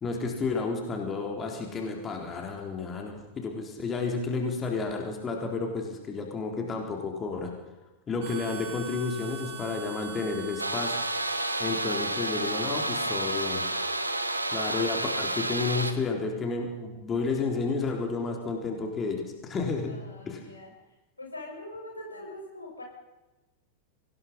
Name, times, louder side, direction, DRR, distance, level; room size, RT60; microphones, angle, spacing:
voice 1, 0.0-7.5 8.1-11.0 11.6-13.6 14.5-19.9 20.3-20.4, left 4 dB, 20° left, 2 dB, 4.0 m, -31 dB
Harmonica, 8.2-15.5, right 6 dB, 50° right, 7.9 m, -44 dB
voice 2, 9.3-10.8 11.9-13.7 19.8-20.7 21.2-22.8, left 2 dB, 80° left, 0 dB, 6.8 m, -45 dB
sound 1, 10.6-15.9, right 2 dB, 85° right, 1.7 m, -30 dB
24.0 x 19.5 x 5.5 m, 1.1 s
figure-of-eight pair, 90°, 0 cm